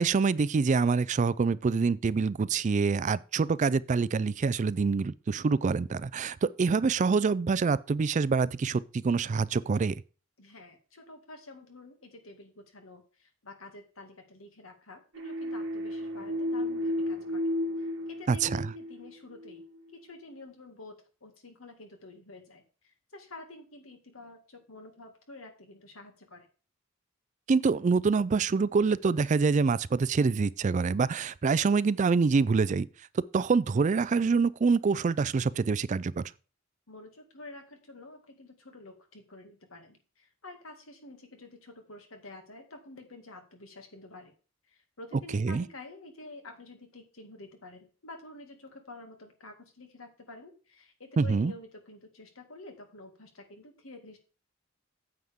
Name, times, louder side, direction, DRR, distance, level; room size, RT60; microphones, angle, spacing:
voice 1, 0.0-9.9 18.3-18.7 27.5-32.9 33.3-36.2 45.3-45.7 51.2-51.5, right 4 dB, 35° right, 0.3 m, -26 dB
voice 2, 10.4-17.4 18.1-19.6 19.9-20.9 21.2-26.5 36.9-44.3 44.7-54.2, left 2 dB, 85° left, 2.1 m, -49 dB
sound 1, 15.1-19.7, left 1 dB, 65° right, 1.9 m, -33 dB
9.4 x 7.8 x 3.6 m
head